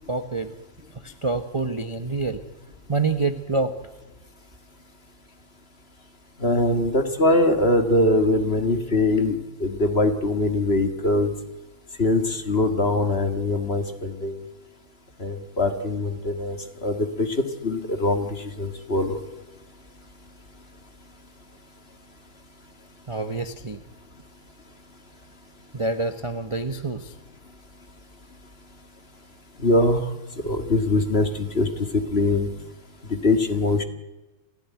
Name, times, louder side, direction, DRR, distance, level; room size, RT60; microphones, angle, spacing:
voice 1, 0.1-0.5 0.9-2.4 2.9-3.7 23.1-23.8 25.7-27.1, right 3 dB, 25° right, 8 dB, 0.8 m, -27 dB
voice 2, 6.4-11.3 12.0-14.3 15.2-18.3 18.6-19.2 29.6-30.0 30.4-31.7 31.9-32.5 33.1-33.8, left 2 dB, 30° left, 8 dB, 1.9 m, -22 dB
27.5 x 16.0 x 9.4 m, 1.1 s
omnidirectional pair, 2.2 m